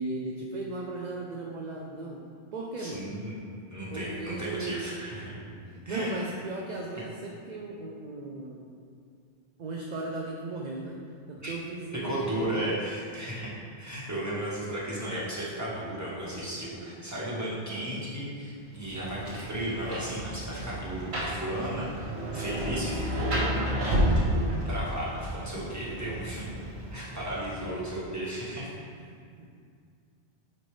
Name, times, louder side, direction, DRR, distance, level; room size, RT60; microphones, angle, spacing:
voice 1, 0.0-3.1 3.9-4.8 5.7-8.6 9.6-11.0 11.3-12.8 27.7-27.8 29.0-29.5, right 2 dB, 50° right, -1 dB, 0.7 m, -37 dB
voice 2, 2.8-3.4 3.7-5.3 5.8-6.1 11.4-11.5 12.0-13.5 13.8-22.1 22.3-23.7 24.1-26.4 26.9-28.7, right 1 dB, 15° right, -7 dB, 1.5 m, -34 dB
Rain, 18.7-27.8, equal, 85° right, 1.5 m, -31 dB
9.4 x 4.5 x 3.3 m, 2.2 s
omnidirectional pair, 1.1 m